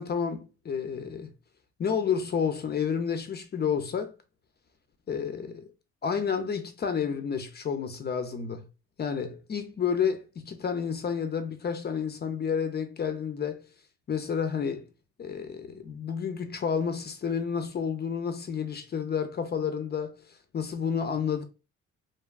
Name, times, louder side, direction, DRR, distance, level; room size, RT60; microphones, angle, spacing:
voice 1, 0.0-1.3 1.8-4.1 5.1-5.7 6.0-8.7 9.0-13.6 14.1-14.9 15.2-21.4, left 6 dB, 35° left, 0.4 m, -30 dB
2.7 x 2.2 x 2.2 m
cardioid pair, 90°, 30 cm